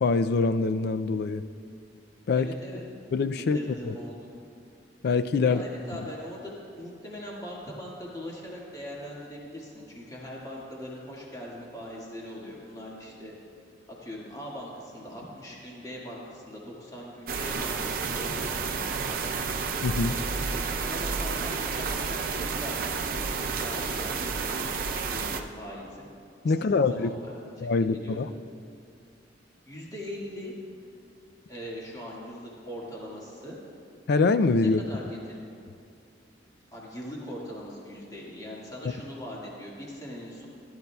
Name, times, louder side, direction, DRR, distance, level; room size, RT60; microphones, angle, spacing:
voice 1, 0.0-1.4 2.3-2.5 3.1-3.9 5.0-5.6 19.8-20.2 26.4-27.1 27.6-28.3 34.1-34.8, left 4 dB, 60° left, 11 dB, 0.4 m, -24 dB
voice 2, 2.3-2.8 3.5-4.2 5.4-13.3 14.0-19.5 20.5-26.1 26.4-27.7 28.0-28.2 29.7-30.5 31.5-33.6 34.6-35.4 36.7-40.5, equal, 20° left, -5 dB, 1.8 m, -41 dB
sound 1, 17.3-25.4, right 5 dB, 50° right, 0.6 m, -30 dB
16.0 x 12.0 x 2.3 m, 2.4 s
head